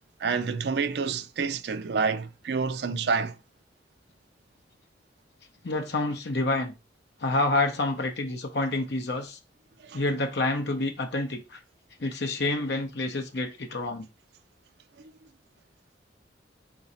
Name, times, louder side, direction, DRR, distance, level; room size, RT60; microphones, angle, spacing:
voice 1, 0.2-3.4 9.9-10.0, right 5 dB, 60° right, 0.4 m, -28 dB
voice 2, 5.6-6.7 7.2-9.4 9.9-11.6 12.0-14.1, left 2 dB, 65° left, 0.7 m, -28 dB
3.8 x 2.7 x 4.1 m
head